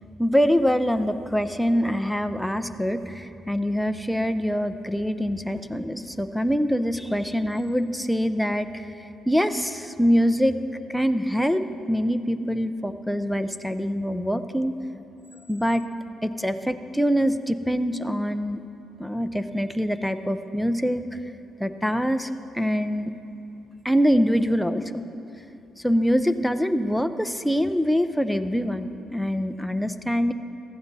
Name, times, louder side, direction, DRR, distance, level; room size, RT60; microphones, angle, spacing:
voice 1, 0.2-9.0 9.3-10.6 10.9-14.8 15.5-15.8 16.2-18.6 19.0-21.2 21.6-23.1 23.8-25.0 25.8-30.3, equal, ahead, 9 dB, 0.6 m, -24 dB
15.0 x 14.5 x 4.1 m, 2.7 s
cardioid pair, 85°, 0 cm